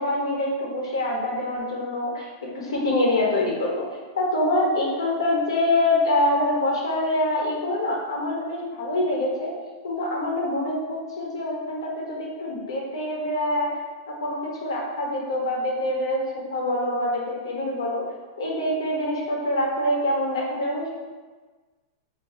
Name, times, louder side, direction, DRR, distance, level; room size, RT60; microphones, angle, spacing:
voice 1, 0.0-3.9 4.1-9.5 9.8-13.7 14.1-18.0 18.4-20.9, left 1 dB, 85° left, -2 dB, 1.0 m, -25 dB
4.4 x 2.7 x 2.7 m, 1.4 s
hypercardioid pair, 120°, 2 cm